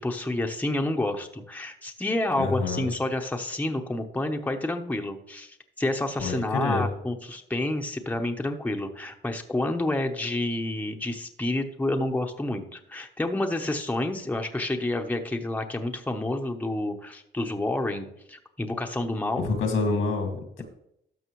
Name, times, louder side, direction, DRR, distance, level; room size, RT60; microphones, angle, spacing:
voice 1, 0.0-19.5, left 1 dB, 10° left, 3 dB, 0.9 m, -29 dB
voice 2, 2.3-2.9 6.2-6.9 19.4-20.6, left 3 dB, 90° left, 4 dB, 2.1 m, -27 dB
12.5 x 6.0 x 3.1 m, 0.76 s
cardioid pair, 90°, 20 cm